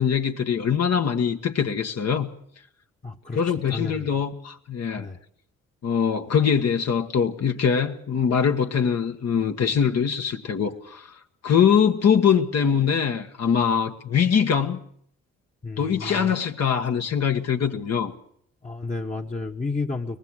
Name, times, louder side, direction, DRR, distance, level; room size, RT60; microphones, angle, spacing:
voice 1, 0.0-2.3 3.3-5.1 5.8-11.1 11.4-14.8 15.8-18.1, left 7 dB, 60° left, 1.6 m, -23 dB
voice 2, 3.0-3.4 3.7-4.1 5.0-5.2 15.6-16.3 18.6-20.2, left 3 dB, 25° left, 1.3 m, -31 dB
23.5 x 19.5 x 6.4 m
cardioid pair, 70°, 29 cm